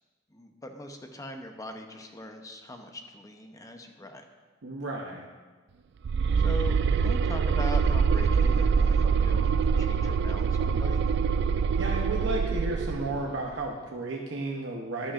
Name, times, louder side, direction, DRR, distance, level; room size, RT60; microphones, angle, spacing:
voice 1, 0.3-4.2 6.4-11.0, left 1 dB, 20° left, 5 dB, 0.7 m, -41 dB
voice 2, 4.6-5.3 11.8-15.1, right 2 dB, 80° right, 0 dB, 0.8 m, -33 dB
sound 1, 6.0-13.3, right 6 dB, 65° right, 0.3 m, -24 dB
11.5 x 11.5 x 2.5 m, 1.4 s
head